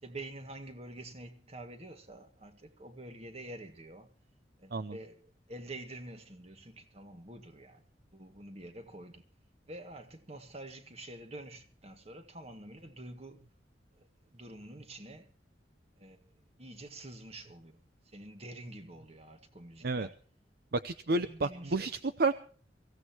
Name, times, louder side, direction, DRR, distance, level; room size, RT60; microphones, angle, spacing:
voice 1, 0.0-4.1 4.6-7.8 8.1-9.2 9.7-13.4 13.9-15.3 16.0-17.8 18.1-20.2 21.1-22.0, right 1 dB, 35° right, 1.9 m, -47 dB
voice 2, 20.7-22.3, right 3 dB, 55° right, 0.7 m, -31 dB
24.0 x 16.0 x 3.0 m
head